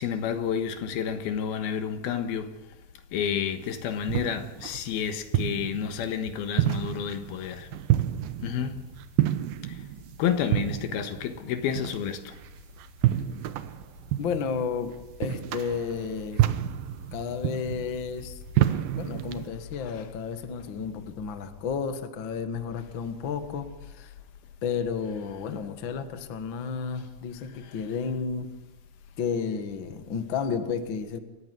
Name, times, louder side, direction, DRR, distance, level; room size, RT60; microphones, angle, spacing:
voice 1, 0.0-2.8 3.1-7.7 8.4-8.8 9.6-9.8 10.2-12.4 18.6-18.8 19.7-20.1 25.3-25.4 27.4-27.9, left 8 dB, 85° left, 3.3 m, -30 dB
sound 1, 3.6-19.5, right 13 dB, 75° right, 2.7 m, -30 dB
voice 2, 14.2-16.5 17.1-18.4 18.9-24.1 24.6-28.5 29.2-31.2, left 6 dB, 45° left, 1.7 m, -32 dB
28.0 x 14.5 x 9.5 m
omnidirectional pair, 4.3 m